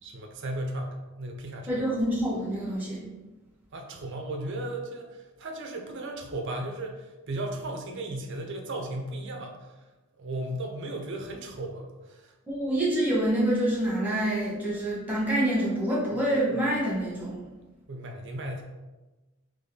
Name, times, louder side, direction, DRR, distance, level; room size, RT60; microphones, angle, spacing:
voice 1, 0.0-1.8 3.7-9.7 10.2-12.3 16.1-16.2 17.9-18.6, right 1 dB, 55° right, 3 dB, 0.6 m, -35 dB
voice 2, 1.7-3.0 12.5-17.4, right 1 dB, 5° right, -7 dB, 1.3 m, -26 dB
4.0 x 3.1 x 3.6 m, 1.1 s
head